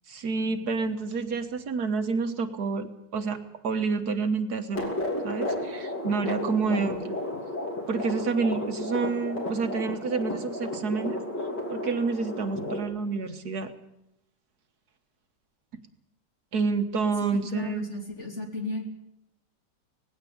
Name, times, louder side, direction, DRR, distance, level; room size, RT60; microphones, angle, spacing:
voice 1, 0.1-3.4 3.6-4.9 5.2-7.2 7.9-11.2 11.7-13.7 16.5-17.9, right 4 dB, 65° right, 8 dB, 1.7 m, -28 dB
sound 1, 4.7-12.8, left 1 dB, 75° left, 3.8 m, -33 dB
voice 2, 17.3-18.9, left 2 dB, 40° left, 2 dB, 3.3 m, -35 dB
19.0 x 16.5 x 8.5 m, 0.85 s
omnidirectional pair, 1.9 m